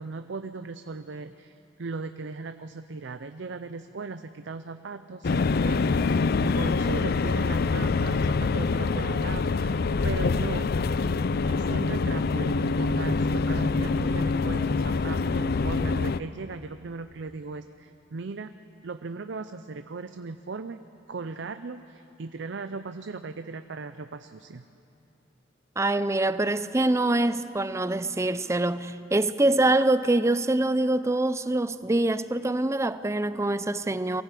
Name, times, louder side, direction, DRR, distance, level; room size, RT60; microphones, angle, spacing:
voice 1, 0.0-10.7 11.5-18.5 18.8-24.6, right 4 dB, 60° right, 0.5 m, -38 dB
sound 1, 5.2-16.2, left 4 dB, 50° left, 0.4 m, -25 dB
voice 2, 25.8-34.2, right 2 dB, 15° right, 0.4 m, -24 dB
23.0 x 15.5 x 8.3 m
head